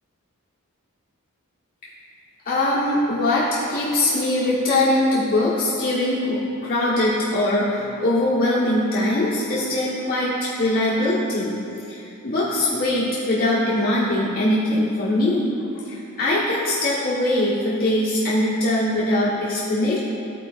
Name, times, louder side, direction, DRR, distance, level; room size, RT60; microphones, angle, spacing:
voice 1, 2.4-11.5 11.9-20.0, left 1 dB, 40° left, -9 dB, 1.3 m, -22 dB
13.5 x 4.6 x 2.5 m, 2.6 s
head